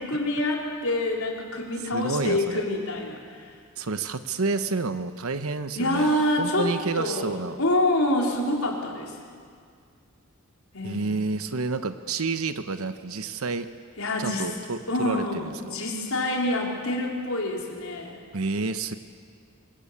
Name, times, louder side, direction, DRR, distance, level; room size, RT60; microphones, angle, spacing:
voice 1, 0.0-3.5 5.8-7.3 7.6-9.1 10.7-11.1 14.0-14.5 14.9-18.2, left 1 dB, 80° left, -1 dB, 4.4 m, -26 dB
voice 2, 1.9-2.6 3.8-6.1 6.4-7.6 10.8-13.7 14.2-15.8 18.3-18.9, right 3 dB, 80° right, 10 dB, 0.9 m, -29 dB
24.5 x 22.0 x 8.5 m, 2.1 s
head